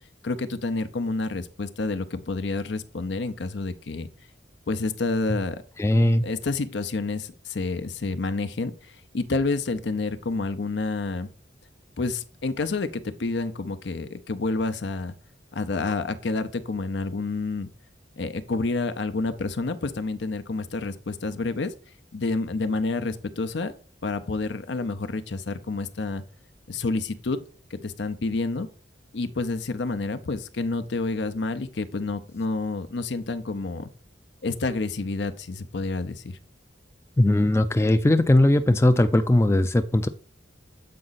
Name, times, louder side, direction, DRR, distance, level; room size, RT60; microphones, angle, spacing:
voice 1, 0.2-4.1 4.7-5.6 6.2-11.3 12.0-15.1 15.5-17.7 18.2-21.7 22.1-23.7 24.0-26.2 26.7-27.4 27.7-28.7 29.1-33.9 34.4-36.4, left 3 dB, 75° left, 11 dB, 0.6 m, -29 dB
voice 2, 5.8-6.2 37.2-40.1, left 1 dB, 15° left, 8 dB, 0.3 m, -19 dB
7.6 x 4.8 x 4.0 m, 0.40 s
head